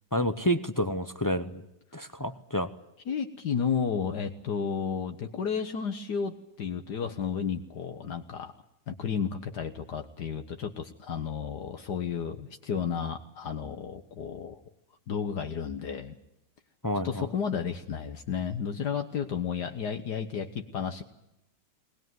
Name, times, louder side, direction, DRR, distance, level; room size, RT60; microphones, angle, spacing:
voice 1, 0.1-1.6 1.9-2.7 16.8-17.3, equal, 25° left, 10 dB, 0.4 m, -29 dB
voice 2, 3.1-8.5 8.9-14.6 15.1-16.1 17.0-21.0, left 7 dB, 65° left, 6 dB, 1.7 m, -32 dB
21.5 x 19.5 x 9.3 m, 0.86 s
omnidirectional pair, 2.0 m